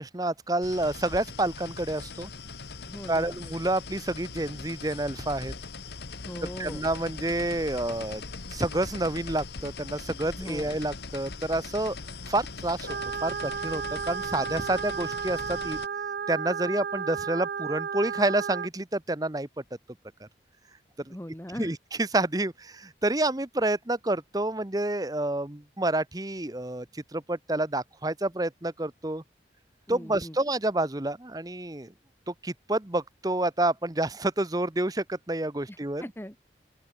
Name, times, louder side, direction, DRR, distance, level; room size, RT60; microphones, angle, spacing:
voice 1, 0.0-2.3 3.1-5.5 6.6-8.2 8.5-12.0 12.3-12.9 13.2-15.8 16.3-19.5 21.1-21.2 21.6-29.2 29.9-31.9 32.3-36.0, right 2 dB, 20° right, 0.9 m, -29 dB
sound 1, 0.6-15.9, left 4 dB, 70° left, 1.4 m, -41 dB
voice 2, 2.9-3.4 6.3-6.8 10.4-10.7 21.1-21.7 29.9-30.4 35.7-36.4, equal, 10° left, 1.5 m, -40 dB
sound 2, 12.9-18.7, right 7 dB, 60° right, 0.3 m, -33 dB
open air
head